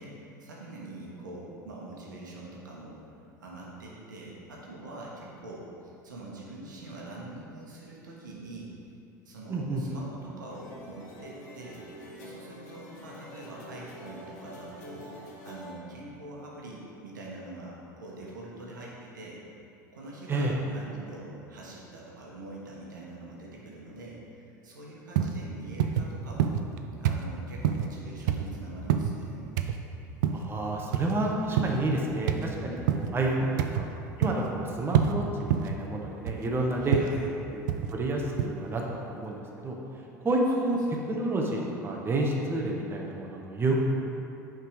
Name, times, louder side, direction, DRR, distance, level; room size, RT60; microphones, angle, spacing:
voice 1, 0.0-3.0 3.4-8.7 9.2-15.1 15.4-19.4 19.9-26.6 27.0-29.5 33.4-33.7 36.8-37.3 40.5-40.6, right 2 dB, 85° right, -4 dB, 1.1 m, -44 dB
voice 2, 9.5-9.8 20.3-20.5 30.3-33.5 34.2-37.0 37.5-39.4 39.6-39.8 40.2-40.8 41.1-43.8, right 2 dB, 25° right, -1 dB, 0.9 m, -29 dB
sound 1, 10.5-15.7, left 1 dB, 70° left, 1.2 m, -46 dB
sound 2, 25.2-25.4 25.8-26.1 26.4-26.8 27.0-27.3 27.6-27.9 28.3-28.5 28.9-29.1 29.6-29.8 30.2-30.5 30.9-31.1 31.6-31.8 32.3-32.5 32.9-33.1 33.6-33.9 34.2-34.5 34.9-35.1 35.5-35.8 36.3-36.5 36.9-37.1 37.7-37.9 38.4-38.5, right 9 dB, 70° right, 0.4 m, -26 dB
5.7 x 3.7 x 4.8 m, 2.7 s
hypercardioid pair, 80°, 10 cm